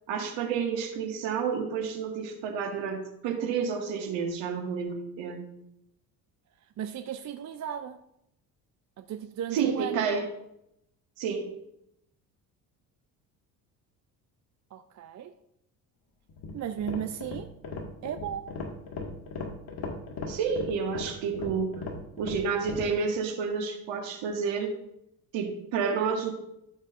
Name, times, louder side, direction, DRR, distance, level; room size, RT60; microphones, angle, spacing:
voice 1, 0.1-5.4 9.5-10.2 11.2-11.5 20.2-21.9 22.2-24.7 25.3-26.4, right 6 dB, 60° right, 2 dB, 2.0 m, -30 dB
voice 2, 6.8-8.0 9.0-10.1 14.7-15.3 16.5-17.5 18.0-18.4, right 9 dB, 35° right, 9 dB, 0.6 m, -35 dB
sound 1, 16.3-22.9, left 3 dB, 45° left, 1.9 m, -38 dB
12.5 x 7.2 x 2.6 m, 0.79 s
hypercardioid pair, 55°, 50 cm